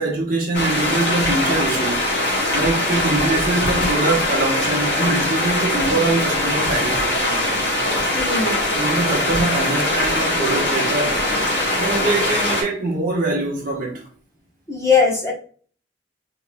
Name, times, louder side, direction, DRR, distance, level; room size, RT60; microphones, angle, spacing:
voice 1, 0.0-7.5 8.7-11.2 11.8-14.1, right 2 dB, 45° right, 1.3 m, -23 dB
sound 1, 0.5-12.6, left 1 dB, 55° left, 1.8 m, -21 dB
voice 2, 8.1-8.6 14.7-15.3, left 5 dB, 15° left, 1.1 m, -19 dB
4.2 x 3.5 x 2.3 m
head